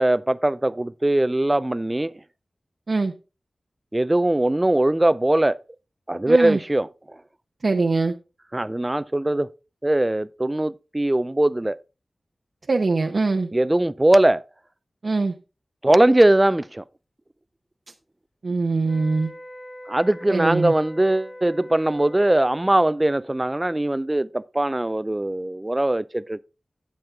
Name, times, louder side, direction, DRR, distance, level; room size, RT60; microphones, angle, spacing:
voice 1, 0.0-2.1 3.9-5.6 6.1-7.2 8.5-9.5 9.8-11.8 13.5-14.4 15.8-16.8 19.9-26.4, right 1 dB, 25° right, 0.4 m, -21 dB
voice 2, 6.3-6.6 7.6-8.1 12.7-13.5 15.0-15.4 18.4-19.3 20.3-20.7, right 3 dB, 65° right, 0.8 m, -22 dB
sound 1, 18.8-22.8, left 1 dB, 50° left, 3.6 m, -41 dB
10.5 x 7.4 x 3.5 m
cardioid pair, 45°, 0 cm